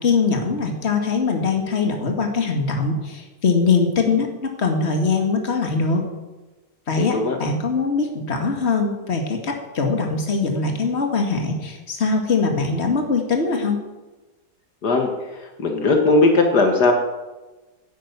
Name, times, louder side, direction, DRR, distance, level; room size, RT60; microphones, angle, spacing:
voice 1, 0.0-6.0 6.9-13.9, left 4 dB, 40° left, 3 dB, 2.3 m, -22 dB
voice 2, 15.6-16.9, left 3 dB, 70° left, 3 dB, 2.2 m, -17 dB
11.5 x 10.5 x 8.2 m, 1.1 s
omnidirectional pair, 1.8 m